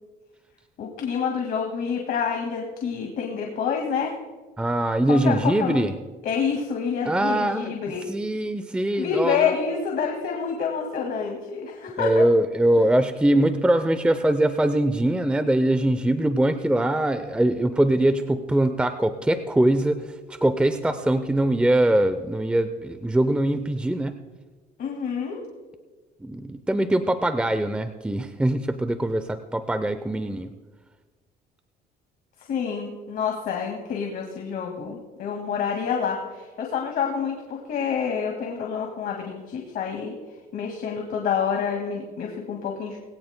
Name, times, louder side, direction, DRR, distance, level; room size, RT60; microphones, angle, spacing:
voice 1, 0.8-4.2 5.1-5.9 6.2-8.0 8.9-12.2 24.8-25.4 32.5-40.1 40.5-43.0, left 6 dB, 60° left, 1 dB, 2.0 m, -28 dB
voice 2, 4.6-5.9 7.1-7.7 8.1-9.5 12.0-24.2 26.2-30.5, right 1 dB, 5° right, 10 dB, 0.6 m, -22 dB
20.5 x 17.0 x 2.2 m, 1.3 s
cardioid pair, 110°, 17 cm